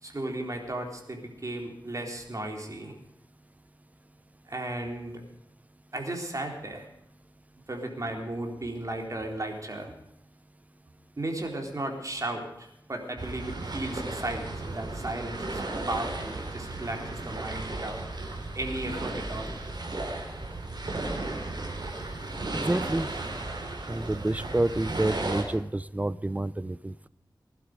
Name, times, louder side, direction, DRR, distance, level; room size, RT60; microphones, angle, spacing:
voice 1, 0.0-2.9 4.5-5.2 5.9-6.9 7.7-9.9 11.2-18.0 18.5-19.6, right 1 dB, 45° right, 2 dB, 3.9 m, -35 dB
sound 1, 13.2-25.4, right 2 dB, 65° right, 4.1 m, -35 dB
voice 2, 22.5-23.1 23.9-27.1, right 1 dB, 20° right, 17 dB, 0.6 m, -29 dB
20.5 x 11.5 x 5.1 m, 0.81 s
wide cardioid pair, 80°, 8 cm